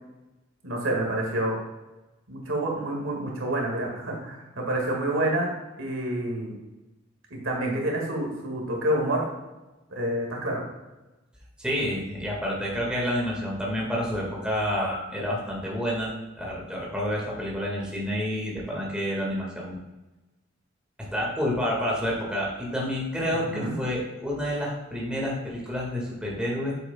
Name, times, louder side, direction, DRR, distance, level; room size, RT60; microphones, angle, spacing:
voice 1, 0.6-1.6 2.3-6.5 7.3-9.3 9.9-10.6 23.4-23.7, right 1 dB, 85° right, -1 dB, 2.1 m, -28 dB
voice 2, 11.6-16.1 16.4-19.8 21.0-26.7, equal, 5° right, -4 dB, 1.9 m, -29 dB
7.7 x 7.6 x 2.4 m, 1.1 s
head